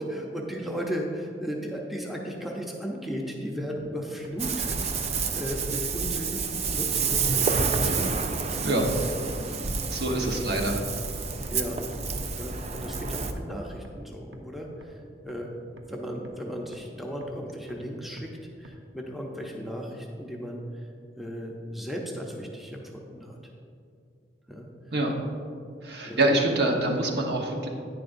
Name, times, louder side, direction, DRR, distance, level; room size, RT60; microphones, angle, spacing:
voice 1, 0.0-8.1 10.3-10.6 11.5-11.8 12.4-18.3 18.6-20.9 21.2-23.4 24.5-24.7 26.0-26.2, equal, ahead, -1 dB, 0.7 m, -36 dB
sound 1, 3.8-3.9 4.2-4.3 4.7-4.8 5.2-5.3 5.7-5.8 6.2-6.3 6.6-6.7 7.1-7.2 7.6-7.7 8.1-8.2 8.6-8.7 9.0-9.1 9.5-9.6 10.0-10.1 10.5-10.6 11.0-11.1 11.4-11.5 11.9-12.0 12.4-12.5 12.9-13.0 13.4-13.5 13.8-13.9 14.3-14.4 14.8-14.9 15.3-15.4 15.8-15.9 16.2-16.3 16.7-16.8 17.2-17.3 17.7-17.8 18.2-18.3 18.6-18.7, right 2 dB, 90° right, 0.8 m, -47 dB
Ocean, 4.4-13.3, right 4 dB, 35° right, 0.5 m, -29 dB
voice 2, 9.9-10.8 24.9-25.1 25.8-27.7, right 1 dB, 60° right, 1 dB, 1.1 m, -25 dB
10.5 x 9.6 x 2.6 m, 2.4 s
head